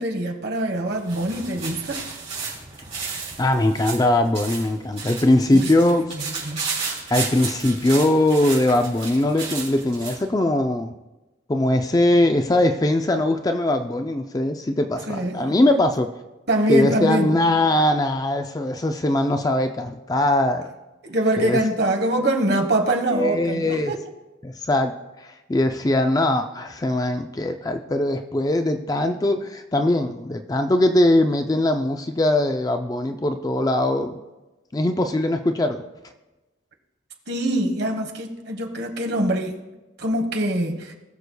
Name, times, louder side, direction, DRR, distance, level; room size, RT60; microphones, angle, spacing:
voice 1, 0.0-2.0 5.5-5.7 6.4-6.7 15.1-15.4 16.5-17.4 21.0-24.0 37.3-39.6 40.0-40.9, right 1 dB, 55° right, 3 dB, 1.3 m, -23 dB
sound 1, 0.8-10.2, right 5 dB, 35° right, 3.7 m, -33 dB
voice 2, 3.4-6.1 7.1-10.9 11.5-16.1 16.7-20.7 21.4-21.6 23.1-23.9 24.4-24.9 25.2-34.2 34.7-35.8, left 1 dB, 20° left, 7 dB, 0.4 m, -21 dB
20.0 x 6.7 x 2.3 m, 1.1 s
head